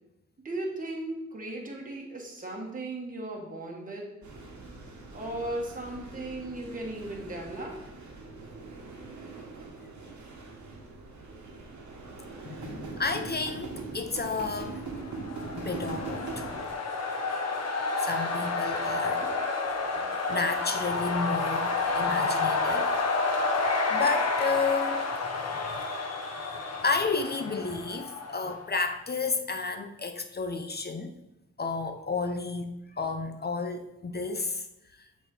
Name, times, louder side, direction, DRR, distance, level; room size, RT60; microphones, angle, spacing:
voice 1, 0.4-4.0 5.1-7.8 19.2-19.3, right 1 dB, 30° right, -2 dB, 1.4 m, -36 dB
sound 1, 4.2-16.7, right 3 dB, 80° right, 1.3 m, -42 dB
voice 2, 12.4-14.8 15.5-16.4 18.0-19.2 20.0-22.9 23.9-25.0 25.4-25.6 26.8-31.1 31.6-32.7 33.0-34.7, left 4 dB, 35° left, 6 dB, 0.6 m, -31 dB
sound 2, 14.9-28.6, left 3 dB, 60° left, 1.0 m, -30 dB
7.0 x 4.1 x 4.1 m, 0.91 s
wide cardioid pair, 90°, 29 cm